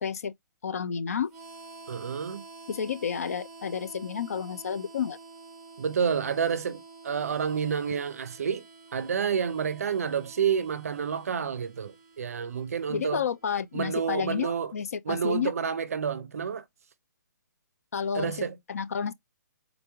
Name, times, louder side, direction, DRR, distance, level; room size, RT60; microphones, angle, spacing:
voice 1, 0.0-0.3 0.6-1.3 2.7-5.2 12.9-15.5 17.9-18.3 18.7-19.1, left 7 dB, 50° left, 0.4 m, -30 dB
Harmonica, 1.3-13.9, right 3 dB, 5° right, 0.9 m, -49 dB
voice 2, 1.9-2.4 5.8-8.7 8.9-13.2 13.7-14.7 15.0-16.6 18.1-18.6, right 7 dB, 50° right, 0.5 m, -29 dB
3.9 x 3.4 x 2.9 m
hypercardioid pair, 180°, 10 cm